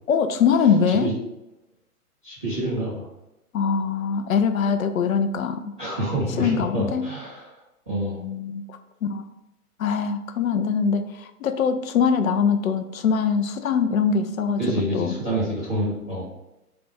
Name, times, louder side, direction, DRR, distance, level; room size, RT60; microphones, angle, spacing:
voice 1, 0.1-1.1 3.5-5.7 6.4-7.0 8.2-8.8 9.1-9.2 9.8-14.6 14.9-15.1, left 6 dB, 65° left, 9 dB, 0.5 m, -22 dB
voice 2, 2.2-3.1 5.8-7.5 7.9-8.2 14.6-16.2, right 1 dB, 5° right, -19 dB, 0.4 m, -27 dB
3.4 x 2.2 x 4.3 m, 0.92 s
figure-of-eight pair, 120°, 46 cm